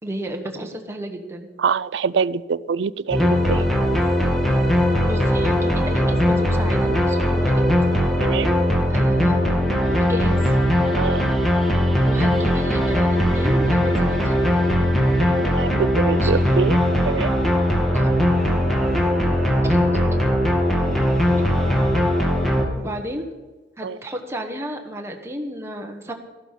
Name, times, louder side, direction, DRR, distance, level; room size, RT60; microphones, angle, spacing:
voice 1, 0.0-1.5 5.0-7.5 8.9-9.4 9.8-10.5 12.1-14.3 16.2-16.4 17.9-18.1 19.6-20.2 22.8-23.2 23.8-26.1, equal, 15° right, 2 dB, 1.2 m, -32 dB
voice 2, 1.6-3.7 8.2-8.6 11.0-11.2 15.4-16.8 17.1-17.3 23.8-24.0, right 5 dB, 70° right, 19 dB, 0.4 m, -24 dB
sound 1, 3.1-22.7, equal, ahead, 1.9 m, -19 dB
14.0 x 12.0 x 5.7 m, 1.2 s
head